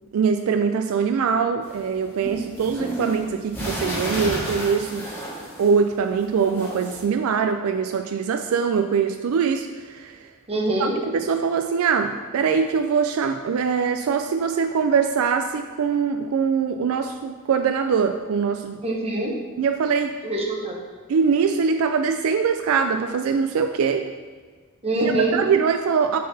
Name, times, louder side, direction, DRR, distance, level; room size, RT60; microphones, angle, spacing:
voice 1, 0.1-5.1 5.6-10.2 10.8-18.8 19.6-20.1 21.1-24.1 24.9-26.2, right 6 dB, 75° right, 7 dB, 0.3 m, -23 dB
sound 1, 1.6-5.9 6.2-7.0, right 1 dB, 10° left, 1.5 m, -31 dB
voice 2, 10.5-10.9 18.8-19.4 20.2-20.8 24.8-25.4, right 2 dB, 30° right, -1 dB, 0.9 m, -24 dB
6.5 x 3.9 x 4.0 m, 1.5 s
head